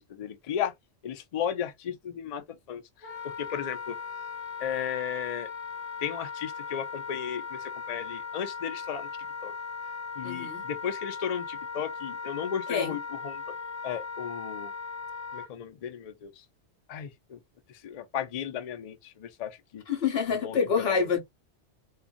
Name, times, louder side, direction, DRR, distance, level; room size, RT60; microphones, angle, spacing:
voice 1, 0.1-0.7 1.0-2.8 3.2-4.0 4.6-5.5 6.0-7.6 7.9-9.1 9.4-9.5 10.2-13.5 13.8-14.7 15.3-16.3 16.9-17.4 17.8-19.8 20.3-20.9, left 8 dB, 80° left, 0.3 m, -35 dB
Wind instrument woodwind instrument, 3.0-15.5, left 5 dB, 40° left, 0.6 m, -38 dB
voice 2, 10.2-10.6 12.7-13.0 19.9-21.2, left 6 dB, 60° left, 1.1 m, -27 dB
2.5 x 2.3 x 2.4 m
omnidirectional pair, 1.2 m